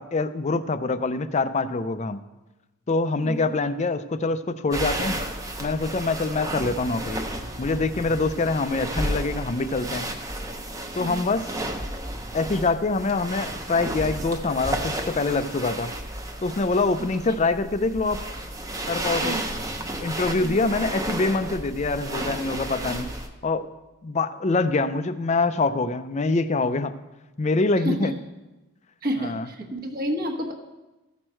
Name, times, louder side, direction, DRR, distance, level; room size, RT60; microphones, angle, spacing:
voice 1, 0.0-2.2 2.9-5.2 5.6-7.2 7.6-10.1 10.9-11.5 12.3-15.9 16.4-18.2 18.9-19.4 20.0-23.1 23.4-23.7 24.0-26.9 27.4-28.1 29.2-29.5, left 3 dB, 30° left, 12 dB, 0.4 m, -25 dB
sound 1, 4.7-23.3, right 1 dB, 15° right, 0.7 m, -32 dB
voice 2, 20.4-20.7 27.8-28.1 29.0-30.5, equal, 40° right, 3 dB, 1.1 m, -30 dB
14.5 x 6.3 x 4.4 m, 1.1 s
head